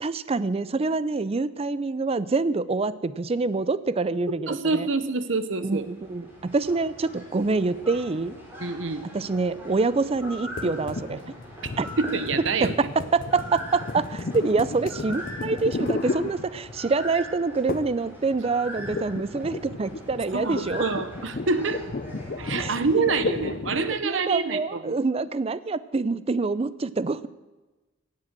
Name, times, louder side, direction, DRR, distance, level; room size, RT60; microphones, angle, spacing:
voice 1, 0.0-4.9 5.6-8.4 9.1-11.2 11.8-11.9 12.6-20.9 22.6-22.7 24.0-27.3, right 3 dB, 30° right, 16 dB, 0.5 m, -26 dB
voice 2, 4.5-5.8 8.6-9.0 12.0-12.9 20.3-21.8 22.4-24.9, right 4 dB, 80° right, 12 dB, 1.0 m, -26 dB
sound 1, 5.4-23.8, equal, 10° right, 3.9 m, -42 dB
sound 2, 10.6-16.9 17.7-18.1 18.3-24.0, left 3 dB, 45° left, 0.6 m, -33 dB
17.0 x 7.6 x 7.5 m, 1.1 s
head